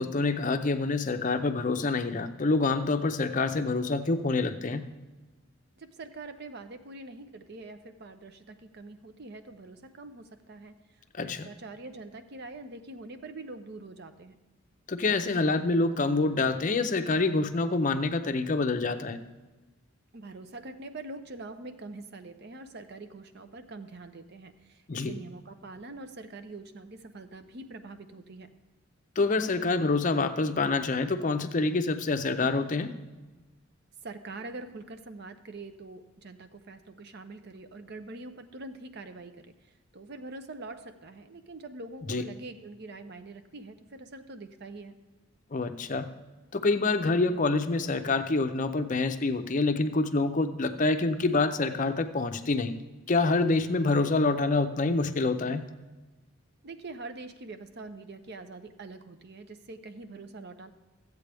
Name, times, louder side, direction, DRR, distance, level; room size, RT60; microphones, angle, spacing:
voice 1, 0.0-4.8 11.2-11.5 14.9-19.2 24.9-25.1 29.2-32.9 42.1-42.2 45.5-46.1 46.5-52.7 53.1-55.6, left 3 dB, 35° left, 9 dB, 0.5 m, -26 dB
voice 2, 5.8-10.7 11.2-14.4 20.1-28.5 34.0-39.5 39.9-45.0 56.6-60.7, right 2 dB, 50° right, 9 dB, 0.6 m, -44 dB
14.5 x 8.2 x 3.4 m, 1.2 s
head